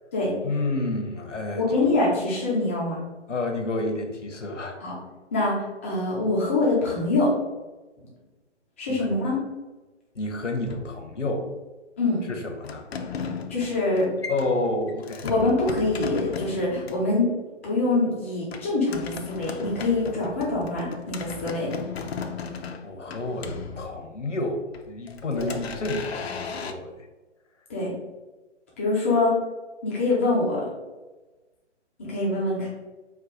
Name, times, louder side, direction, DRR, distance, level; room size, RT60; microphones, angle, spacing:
voice 1, 0.4-1.6 3.3-4.8 8.9-9.1 10.1-11.5 12.3-12.9 14.3-15.3 22.8-26.9, left 2 dB, 85° left, 4 dB, 1.0 m, -29 dB
voice 2, 1.6-3.0 4.8-4.9 5.3-7.3 8.8-9.4 12.0-12.3 13.5-14.1 15.2-17.3 17.6-21.7 25.3-25.4 27.7-27.9 28.8-29.3 29.8-30.7 32.0-32.7, left 2 dB, 10° left, -6 dB, 0.5 m, -24 dB
sound 1, 10.7-11.5 12.6-17.1 18.5-24.3 24.7-26.7, left 5 dB, 60° left, 0.5 m, -36 dB
4.6 x 2.3 x 3.8 m, 1.2 s
figure-of-eight pair, 140°, 35 cm